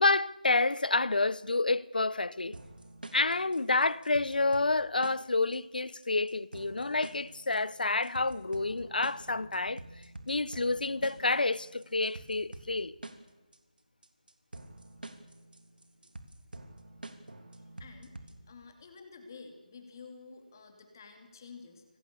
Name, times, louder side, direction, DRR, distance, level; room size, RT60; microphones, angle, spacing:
voice 1, 0.0-2.6 3.1-9.8 10.3-12.9, left 3 dB, 75° left, 0.9 m, -29 dB
sound 1, 2.5-18.5, right 2 dB, 85° right, 3.1 m, -48 dB
voice 2, 17.8-18.1 18.5-21.8, left 4 dB, 25° left, 2.7 m, -50 dB
27.0 x 19.5 x 6.9 m
figure-of-eight pair, 175°, 5 cm